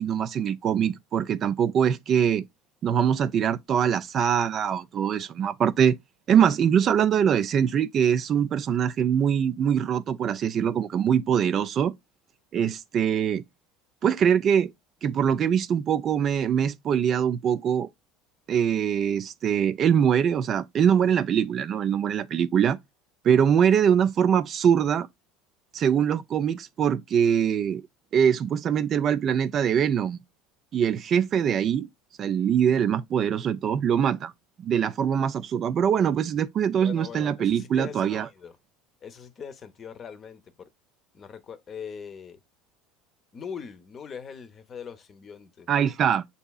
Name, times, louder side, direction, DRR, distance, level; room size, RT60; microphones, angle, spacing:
voice 1, 0.0-2.4 2.8-6.0 6.3-11.9 12.5-13.4 14.0-14.7 15.0-17.9 18.5-22.8 23.2-25.1 25.7-27.8 28.1-30.2 30.7-31.9 32.2-34.3 34.6-38.3 45.7-46.2, right 8 dB, 45° right, 0.3 m, -23 dB
voice 2, 36.8-38.6 39.0-40.7 41.1-42.4 43.3-45.7, left 7 dB, 35° left, 0.7 m, -41 dB
6.9 x 2.7 x 2.3 m
supercardioid pair, 100°, 0 cm